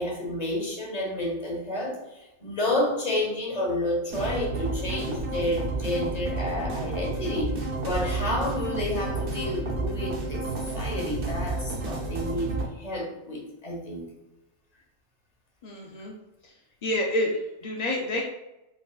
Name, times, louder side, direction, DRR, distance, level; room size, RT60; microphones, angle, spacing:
voice 1, 0.0-7.5 7.8-14.1, left 1 dB, 30° left, -2 dB, 1.1 m, -30 dB
sound 1, 4.1-12.6, right 3 dB, 55° right, 1.2 m, -31 dB
voice 2, 15.6-16.1 16.4-16.6 16.8-18.2, left 1 dB, 50° left, -2 dB, 0.5 m, -28 dB
4.5 x 4.0 x 2.4 m, 0.94 s
omnidirectional pair, 1.4 m